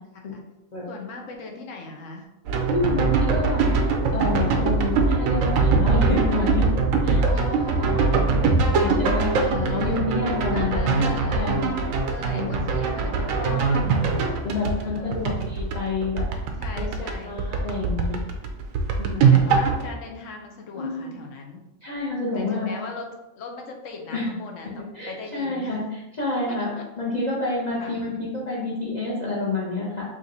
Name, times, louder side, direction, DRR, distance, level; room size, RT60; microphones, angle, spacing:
voice 1, 0.9-2.3 7.2-8.5 9.4-10.1 10.5-11.6 12.1-14.0 14.8-15.2 16.6-17.5 19.2-21.6 22.3-23.1 23.4-25.8 26.4-26.9 27.8-28.0, left 3 dB, 70° left, 2 dB, 1.1 m, -38 dB
sound 1, 2.5-17.1 17.4-19.9, right 4 dB, 85° right, 1.0 m, -22 dB
voice 2, 2.7-3.7 4.1-6.6 7.0-7.2 7.8-8.0 8.7-11.0 11.3-11.7 12.3-12.6 13.3-13.5 14.4-16.2 16.7-18.1 19.0-19.4 20.7-21.1 21.8-22.7 24.1-24.3 24.9-25.8 26.2-26.7 27.0-30.0, left 3 dB, 35° left, -5 dB, 0.8 m, -28 dB
5.0 x 2.9 x 2.7 m, 0.93 s
omnidirectional pair, 1.4 m